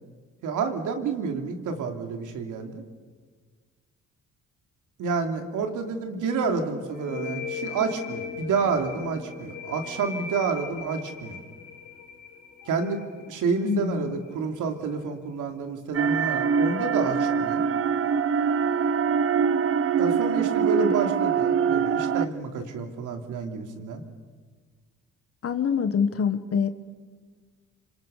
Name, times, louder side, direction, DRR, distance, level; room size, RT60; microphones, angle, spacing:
voice 1, 0.4-2.8 5.0-11.4 12.6-17.7 20.0-24.0, right 5 dB, 85° right, 4 dB, 3.3 m, -29 dB
sound 1, 6.9-14.4, left 6 dB, 75° left, 3.9 m, -39 dB
voice 2, 13.6-14.2 20.8-20.9 25.4-26.7, left 6 dB, 50° left, 10 dB, 1.6 m, -25 dB
sound 2, 15.9-22.3, right 6 dB, 45° right, 0.9 m, -23 dB
27.0 x 26.5 x 6.7 m, 1.5 s
cardioid pair, 90°, 30 cm